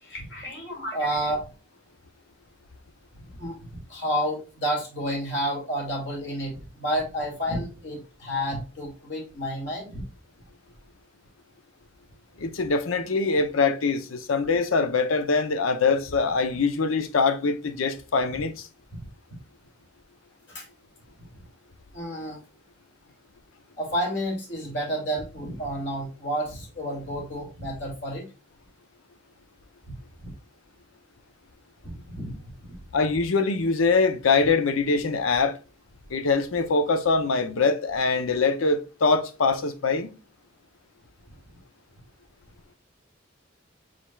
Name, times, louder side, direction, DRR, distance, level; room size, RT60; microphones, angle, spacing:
voice 1, 0.0-1.5 3.4-3.6 3.9-10.0 18.9-19.0 20.5-20.6 21.9-22.4 23.8-28.3 30.2-30.3 32.1-32.7, equal, 60° left, 2.3 m, -30 dB
voice 2, 12.4-18.7 32.9-35.6 36.1-40.1, left 4 dB, 90° left, 0.6 m, -23 dB
5.0 x 4.3 x 2.3 m
head